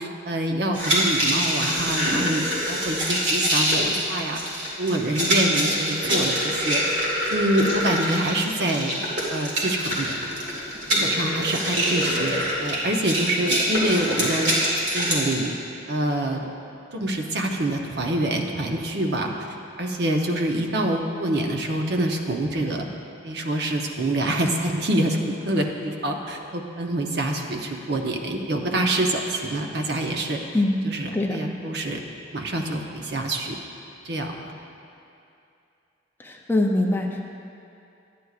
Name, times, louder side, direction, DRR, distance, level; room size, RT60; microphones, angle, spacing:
voice 1, 0.0-4.4 4.8-6.8 7.3-8.9 9.3-10.2 10.9-15.5 15.9-16.5 16.9-19.3 19.8-22.9 23.2-25.2 25.4-30.4 30.8-32.0 32.3-33.6 34.0-34.4, right 1 dB, 60° right, 2 dB, 0.7 m, -26 dB
sound 1, 0.7-15.3, equal, 75° right, 2.1 m, -25 dB
voice 2, 31.1-31.5 36.2-37.2, left 1 dB, 10° left, 1 dB, 0.4 m, -23 dB
11.0 x 9.3 x 2.4 m, 2.6 s
head